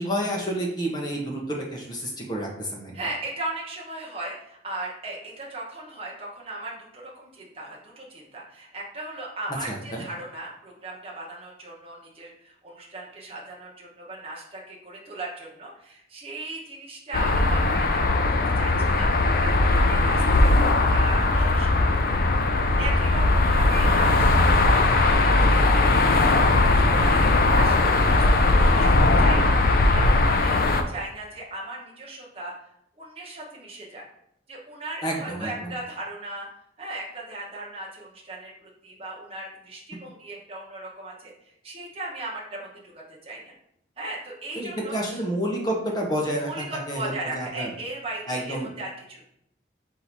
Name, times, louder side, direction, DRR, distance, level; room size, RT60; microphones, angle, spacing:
voice 1, 0.0-2.9 9.7-10.0 35.0-35.5 44.5-46.5 46.9-47.7 48.3-48.7, equal, 20° left, -1 dB, 0.8 m, -29 dB
voice 2, 2.9-19.1 19.4-22.2 22.8-24.1 24.3-27.8 28.1-32.5 33.0-34.0 34.5-36.5 36.8-43.5 44.0-45.2 46.5-49.2, right 2 dB, 30° right, -4 dB, 1.0 m, -37 dB
sound 1, 17.1-30.8, left 2 dB, 50° left, 0.4 m, -19 dB
3.7 x 2.7 x 4.5 m, 0.76 s
head